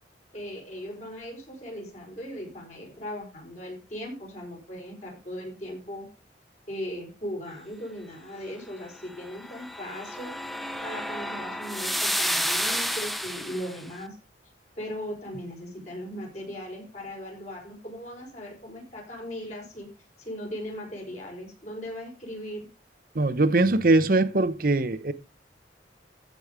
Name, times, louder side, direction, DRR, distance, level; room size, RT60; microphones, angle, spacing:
voice 1, 0.3-6.1 6.7-10.3 10.8-14.2 14.8-19.9 20.2-22.7, equal, 40° left, 4.6 m, -38 dB
sound 1, 9.2-13.8, equal, ahead, 0.6 m, -31 dB
voice 2, 23.1-25.1, right 2 dB, 50° right, 0.8 m, -21 dB
14.5 x 5.2 x 4.9 m
head